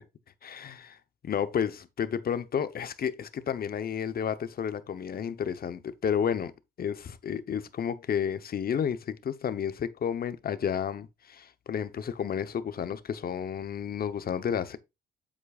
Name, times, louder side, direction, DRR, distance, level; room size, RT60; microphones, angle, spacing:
voice 1, 0.4-1.0 1.2-6.5 6.8-14.8, left 8 dB, 50° left, 0.9 m, -31 dB
8.2 x 7.6 x 2.4 m
cardioid pair, 90°, 20 cm